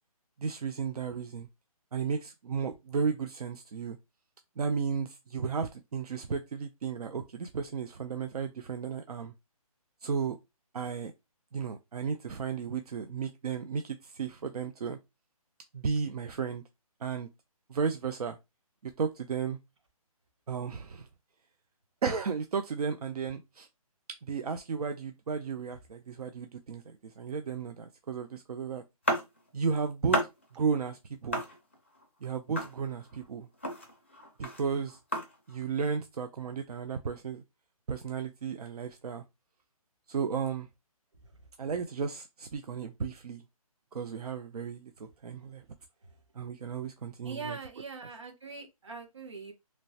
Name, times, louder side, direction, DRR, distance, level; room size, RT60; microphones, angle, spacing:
voice 1, 0.4-1.5 1.9-4.0 4.6-9.3 10.0-10.4 10.7-11.1 11.5-15.0 15.7-16.6 17.0-17.3 17.7-18.4 18.8-19.6 20.5-21.1 22.0-23.7 24.3-28.8 29.5-30.2 30.5-31.4 32.2-33.5 34.4-35.0 35.5-37.4 37.9-39.2 40.1-40.7 41.6-43.4 43.9-45.6 46.4-47.6, right 6 dB, 75° right, 0.4 m, -34 dB
sound 1, 29.0-29.7 30.1-30.6 31.3-32.0 32.6-33.3 33.5-35.6, equal, 20° left, 0.4 m, -33 dB
voice 2, 47.2-49.5, right 4 dB, 50° right, 1.0 m, -42 dB
3.0 x 2.1 x 2.6 m
hypercardioid pair, 180°, 19 cm